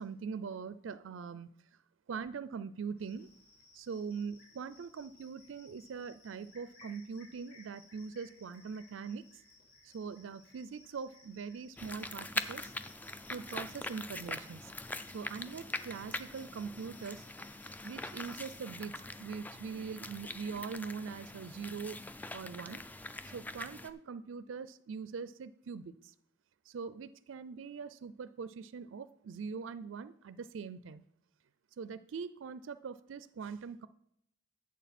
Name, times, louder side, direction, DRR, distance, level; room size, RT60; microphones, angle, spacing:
voice 1, 0.0-1.5 2.1-3.3 3.7-9.4 9.8-12.7 13.3-14.7 15.1-17.2 17.8-22.0 22.3-22.8 23.2-26.1 26.7-31.0 31.8-33.9, right 5 dB, 80° right, 15 dB, 0.4 m, -42 dB
Cricket, 3.0-18.6, left 2 dB, 50° left, 3.7 m, -61 dB
sound 1, 11.8-23.9, left 2 dB, 10° left, 0.3 m, -43 dB
11.0 x 7.6 x 4.2 m, 0.74 s
head